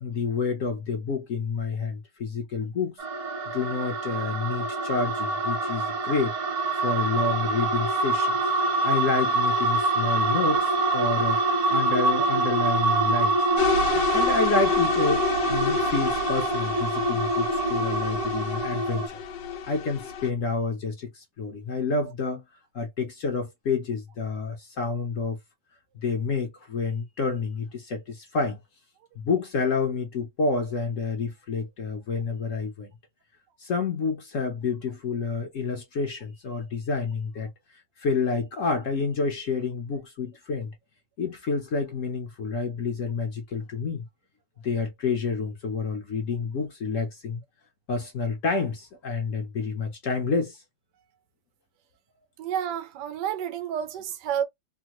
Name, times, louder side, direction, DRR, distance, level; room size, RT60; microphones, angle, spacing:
voice 1, 0.0-2.9 3.5-8.4 8.8-13.4 13.9-15.2 15.5-19.2 19.7-22.4 22.7-25.4 25.9-28.6 29.2-32.9 33.6-37.5 38.0-40.7 41.2-44.0 44.6-47.4 47.9-50.6, left 4 dB, 60° left, 0.9 m, -29 dB
sound 1, 3.0-19.1, right 3 dB, 50° right, 1.4 m, -25 dB
sound 2, 13.6-20.3, left 7 dB, 90° left, 1.4 m, -29 dB
voice 2, 52.4-54.4, right 9 dB, 75° right, 1.2 m, -30 dB
3.5 x 2.1 x 2.9 m
omnidirectional pair, 1.9 m